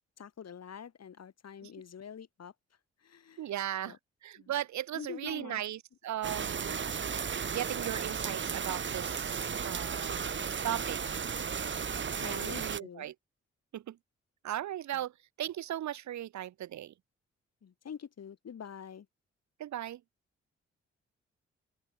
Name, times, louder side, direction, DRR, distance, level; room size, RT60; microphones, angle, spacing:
voice 1, 0.2-2.5 3.0-3.5 3.8-4.0 4.4-4.5 4.9-5.6 12.2-13.1 17.6-19.1, left 7 dB, 60° left, 4.4 m, -46 dB
voice 2, 3.4-6.8 7.5-10.3 10.6-11.0 12.2-13.1 13.7-14.0 14.4-15.1 15.4-16.9 19.6-20.0, right 12 dB, 75° right, 1.6 m, -37 dB
sound 1, 6.2-12.8, right 6 dB, 40° right, 1.1 m, -35 dB
open air
supercardioid pair, 45°, 29 cm